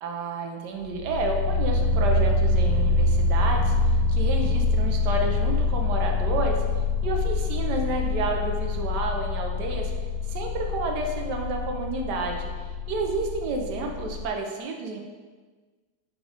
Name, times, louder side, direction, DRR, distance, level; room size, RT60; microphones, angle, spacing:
voice 1, 0.0-3.7 4.1-6.6 7.0-9.9 10.3-12.5 12.9-15.0, right 3 dB, 60° right, 2 dB, 1.2 m, -30 dB
sound 1, 0.8-14.3, left 3 dB, 85° right, 0.8 m, -25 dB
6.3 x 3.8 x 5.0 m, 1.4 s
omnidirectional pair, 2.3 m